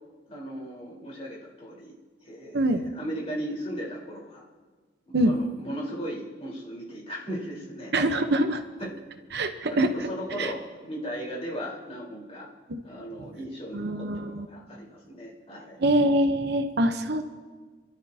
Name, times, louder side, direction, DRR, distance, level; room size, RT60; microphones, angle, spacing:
voice 1, 0.3-1.9 2.2-4.4 5.2-7.9 8.8-8.9 9.7-12.5 12.8-15.8, equal, 35° left, -4 dB, 4.2 m, -37 dB
voice 2, 7.9-8.6 9.3-10.1 10.4-10.5 12.7-12.8 13.7-14.5 15.8-17.2, right 1 dB, 65° right, 7 dB, 0.9 m, -24 dB
28.5 x 12.5 x 2.9 m, 1.4 s
head